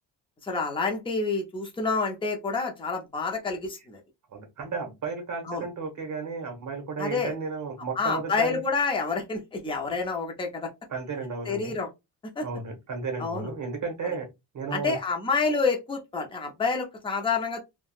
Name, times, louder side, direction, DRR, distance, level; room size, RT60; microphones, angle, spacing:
voice 1, 0.4-4.0 5.5-5.6 7.0-7.3 7.9-10.7 11.5-11.9 12.4-12.5 13.2-13.5 14.7-17.6, left 4 dB, 15° left, 0.4 m, -28 dB
voice 2, 4.3-8.6 10.9-11.8 12.4-14.3 14.5-15.0, right 4 dB, 45° right, 1.0 m, -33 dB
3.4 x 2.2 x 2.3 m
wide cardioid pair, 175°, 43 cm